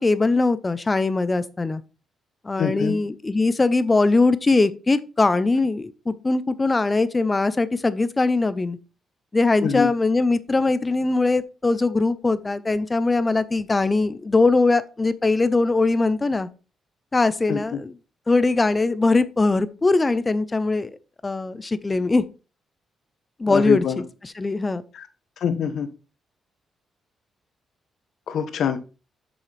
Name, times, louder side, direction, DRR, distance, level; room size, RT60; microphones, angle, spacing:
voice 1, 0.0-1.8 2.4-8.8 9.3-16.5 17.1-17.9 18.3-20.9 21.2-22.2 23.4-23.8 24.4-24.8, left 3 dB, 20° left, 0.6 m, -21 dB
voice 2, 2.6-3.0 9.6-9.9 17.5-17.8 23.5-24.0 24.9-25.1 25.4-25.9 28.3-28.8, left 7 dB, 70° left, 0.9 m, -24 dB
7.4 x 6.3 x 3.3 m
cardioid pair, 130°, 0 cm